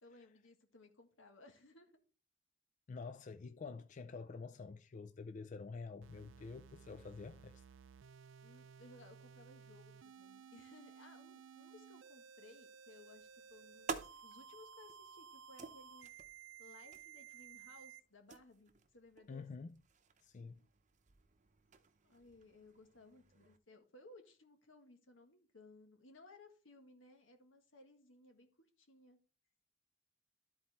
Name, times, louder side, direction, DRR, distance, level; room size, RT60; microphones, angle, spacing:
voice 1, 0.0-2.0 8.4-16.1 16.6-19.5 22.0-29.2, left 2 dB, 80° left, 1.7 m, -61 dB
voice 2, 2.9-7.6 19.3-19.8 20.2-20.6, left 4 dB, 40° left, 0.3 m, -48 dB
sound 1, 6.0-18.0, right 7 dB, 70° right, 0.4 m, -57 dB
sound 2, 13.1-23.6, right 5 dB, 40° right, 0.8 m, -52 dB
12.5 x 4.3 x 4.2 m
head